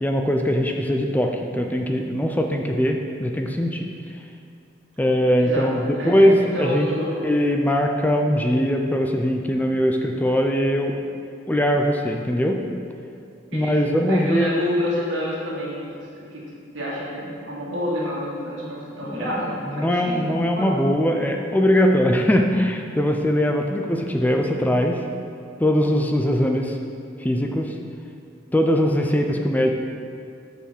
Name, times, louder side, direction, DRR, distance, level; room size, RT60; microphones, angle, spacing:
voice 1, 0.0-3.9 5.0-6.9 7.2-11.0 11.5-12.6 13.5-14.6 19.0-19.2 19.7-25.0 25.6-26.8 27.2-27.7 28.5-29.7, equal, 10° left, 3 dB, 0.4 m, -21 dB
voice 2, 5.9-7.2 13.5-15.8 16.3-16.4 16.7-20.3 20.5-20.8, equal, 85° right, -6 dB, 1.8 m, -28 dB
6.5 x 5.5 x 4.5 m, 2.4 s
head